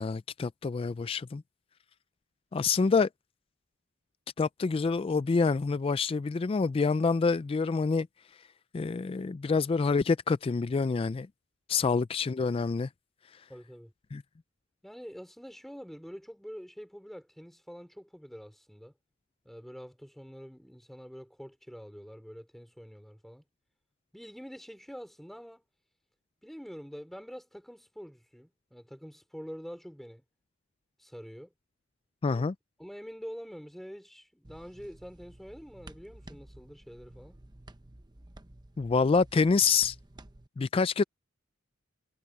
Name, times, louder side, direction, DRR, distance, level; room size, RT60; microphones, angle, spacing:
voice 1, 0.0-1.4 2.5-3.1 4.4-8.1 8.7-11.3 11.7-12.9 14.1-14.2 32.2-32.5 38.8-40.0 40.6-41.0, left 4 dB, 30° left, 0.3 m, -27 dB
voice 2, 13.5-13.9 14.8-18.9 19.4-23.4 24.1-25.6 26.4-30.2 31.0-31.5 32.3-32.4 32.8-37.4, equal, ahead, 4.6 m, -46 dB
sound 1, 34.4-40.5, right 1 dB, 20° right, 0.9 m, -52 dB
head